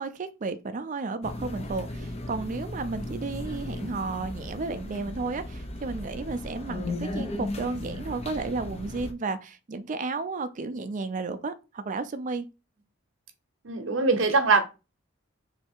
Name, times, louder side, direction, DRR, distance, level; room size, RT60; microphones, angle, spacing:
voice 1, 0.0-12.5, right 3 dB, 40° right, 0.4 m, -33 dB
sound 1, 1.2-9.1, left 1 dB, 30° left, 0.6 m, -36 dB
voice 2, 13.6-14.6, right 4 dB, 65° right, 0.8 m, -22 dB
3.2 x 2.7 x 4.4 m
head